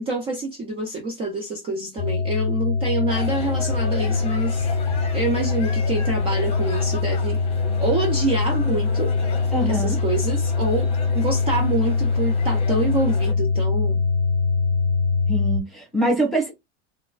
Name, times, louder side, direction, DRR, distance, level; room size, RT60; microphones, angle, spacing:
voice 1, 0.0-4.7 5.1-7.4 7.8-9.1 9.7-10.9 11.1-14.1, right 3 dB, 15° right, 0.3 m, -26 dB
sound 1, 2.0-15.6, left 4 dB, 85° left, 0.6 m, -23 dB
sound 2, 3.1-13.3, left 2 dB, 15° left, 0.8 m, -36 dB
voice 2, 9.5-10.0 15.3-16.5, right 1 dB, ahead, 1.3 m, -23 dB
4.1 x 2.4 x 2.3 m
supercardioid pair, 160°, 35 cm